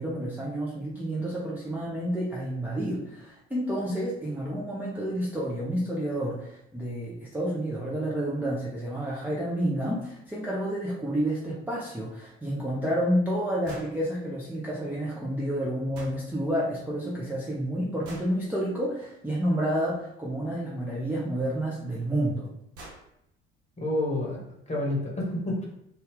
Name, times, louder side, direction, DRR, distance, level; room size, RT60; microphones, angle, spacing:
voice 1, 0.0-22.5, right 1 dB, 5° right, -6 dB, 0.6 m, -30 dB
sound 1, 13.6-13.9 15.9-16.2 18.0-18.3 20.6-20.7 22.0-22.1 22.4-22.5 22.7-23.0, right 1 dB, 60° right, 1.0 m, -44 dB
voice 2, 23.8-25.7, left 1 dB, 20° left, -2 dB, 1.1 m, -29 dB
2.7 x 2.3 x 3.4 m, 0.79 s
figure-of-eight pair, 50°, 33 cm